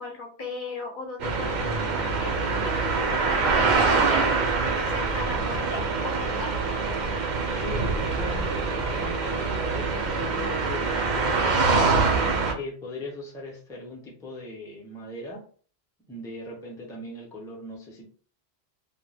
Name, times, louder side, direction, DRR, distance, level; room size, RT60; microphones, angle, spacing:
voice 1, 0.0-6.6, left 2 dB, 55° left, 1 dB, 0.8 m, -37 dB
sound 1, 1.2-12.5, right 4 dB, 55° right, 0.5 m, -25 dB
voice 2, 7.5-15.5 16.1-18.1, left 2 dB, 5° left, -2 dB, 0.4 m, -39 dB
2.2 x 2.1 x 3.2 m, 0.43 s
omnidirectional pair, 1.1 m